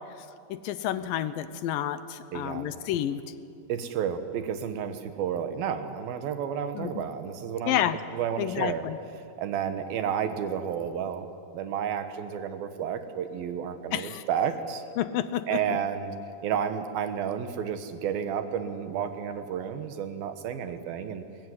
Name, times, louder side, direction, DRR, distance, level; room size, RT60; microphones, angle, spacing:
voice 1, 0.5-3.2 6.7-7.0 7.7-8.0 8.4-9.0 13.9-14.2 15.0-15.6, left 11 dB, 75° left, 12 dB, 2.4 m, -29 dB
voice 2, 2.3-2.7 3.7-7.8 8.1-8.8 9.4-11.3 11.5-14.8 15.5-16.1 16.4-21.3, right 8 dB, 75° right, 9 dB, 3.1 m, -31 dB
22.0 x 21.0 x 9.7 m, 2.5 s
omnidirectional pair, 4.4 m